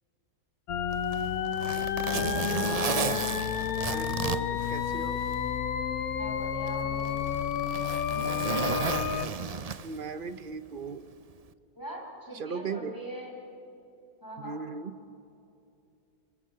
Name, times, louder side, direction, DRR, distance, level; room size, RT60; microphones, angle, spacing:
sound 1, 0.7-9.3, left 8 dB, 65° left, 1.3 m, -31 dB
Zipper (clothing), 0.9-5.4 5.8-5.9 6.7-10.1 11.3-11.5, right 5 dB, 70° right, 0.3 m, -33 dB
voice 1, 2.1-2.5 6.1-7.2 8.1-8.8 11.7-13.3 14.2-14.6, right 1 dB, 10° left, -1 dB, 5.6 m, -41 dB
voice 2, 3.9-5.2 9.8-11.1 12.3-12.9 14.4-14.9, right 5 dB, 40° right, 12 dB, 0.8 m, -37 dB
26.0 x 23.5 x 7.7 m, 2.6 s
omnidirectional pair, 1.7 m